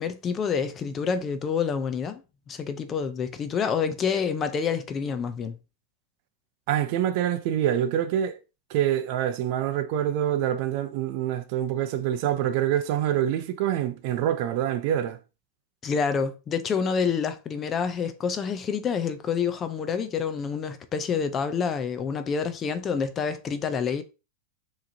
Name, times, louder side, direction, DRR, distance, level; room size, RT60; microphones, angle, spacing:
voice 1, 0.0-2.2 2.5-5.6 15.8-24.0, left 6 dB, 20° left, 0.4 m, -28 dB
voice 2, 6.7-8.4 8.7-15.2, right 11 dB, 45° right, 0.6 m, -26 dB
6.4 x 3.0 x 2.7 m
supercardioid pair, 160°, 0 cm